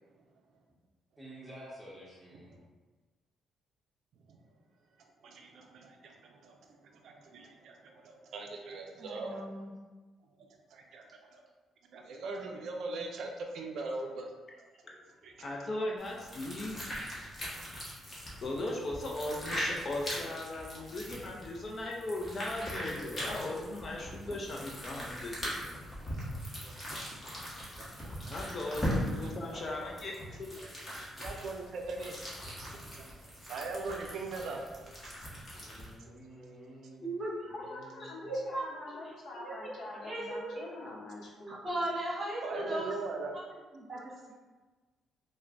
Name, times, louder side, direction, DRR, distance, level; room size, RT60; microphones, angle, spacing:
voice 1, 1.2-2.6 14.8-15.4 29.5-30.3 35.6-37.1 37.4-38.3, equal, 5° right, -6 dB, 1.1 m, -51 dB
voice 2, 5.2-6.6 6.9-9.4 10.7-11.0 11.3-11.4 11.9-14.3 15.2-15.3 26.2-26.3 26.6-26.7 27.1-27.2 27.8-28.3 29.2-29.3 31.2-32.1 32.5-33.1 33.5-34.6 35.0-35.1 36.0-36.1 42.4-43.3, right 3 dB, 70° right, 2 dB, 0.4 m, -41 dB
voice 3, 9.0-9.7 37.0-37.5 38.0-39.0 39.3-39.7 40.0-40.6 41.5-42.9 43.3-43.4 43.7-44.3, right 1 dB, 30° right, -6 dB, 1.3 m, -37 dB
voice 4, 15.4-16.8 18.4-25.7 28.3-30.9, left 2 dB, 40° left, -1 dB, 0.5 m, -38 dB
sound 1, 16.0-35.9, equal, 25° left, 1.1 m, -40 dB
voice 5, 37.5-41.8, left 2 dB, 75° left, -3 dB, 0.8 m, -45 dB
4.4 x 2.1 x 2.5 m, 1.3 s
cardioid pair, 90°, 0 cm